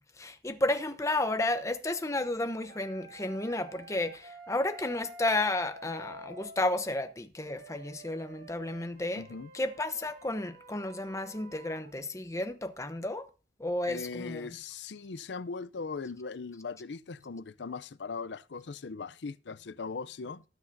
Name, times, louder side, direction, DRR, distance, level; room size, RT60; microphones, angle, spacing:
voice 1, 0.2-9.2 9.5-13.3 13.6-14.5, left 2 dB, 15° left, 0.9 m, -32 dB
sound 1, 2.6-6.6 7.4-11.9, right 2 dB, 55° right, 1.4 m, -50 dB
voice 2, 9.1-9.5 13.9-20.4, left 4 dB, 75° left, 0.6 m, -39 dB
19.0 x 7.9 x 2.7 m
head